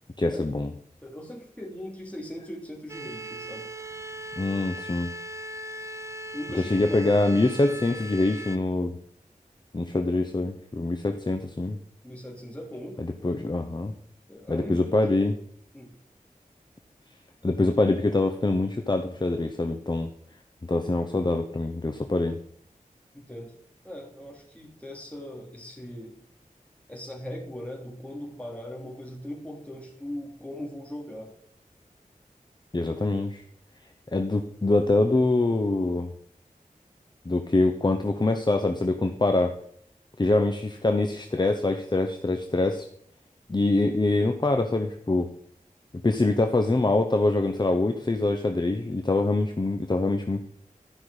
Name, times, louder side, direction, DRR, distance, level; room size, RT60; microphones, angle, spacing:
voice 1, 0.2-0.7 4.4-5.1 6.5-9.0 9.7-11.8 13.0-13.9 14.5-15.3 17.4-20.1 20.6-22.4 32.7-33.4 34.1-36.1 37.3-39.5 40.2-42.9 43.5-45.3 46.0-50.4, left 2 dB, 30° left, 6 dB, 0.8 m, -24 dB
voice 2, 1.0-3.7 6.3-8.1 12.0-13.0 14.3-15.2 15.7-15.9 23.1-23.5 23.8-26.1 26.9-31.3, left 1 dB, 10° left, -2 dB, 3.0 m, -40 dB
sound 1, 2.9-8.6, right 1 dB, 20° right, 0.7 m, -38 dB
12.0 x 5.9 x 4.9 m, 0.66 s
wide cardioid pair, 70°, 14 cm